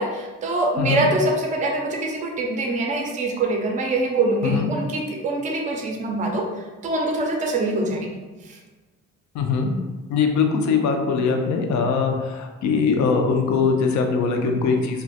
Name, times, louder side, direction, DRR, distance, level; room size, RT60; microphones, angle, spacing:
voice 1, 0.0-6.4 6.8-8.1 8.5-8.6, right 2 dB, 25° right, 1 dB, 0.4 m, -24 dB
voice 2, 0.8-1.1 4.4-4.7 9.3-9.7 10.1-15.0, left 5 dB, 70° left, 4 dB, 0.5 m, -21 dB
2.4 x 2.2 x 2.6 m, 1.2 s
cardioid pair, 90°, 30 cm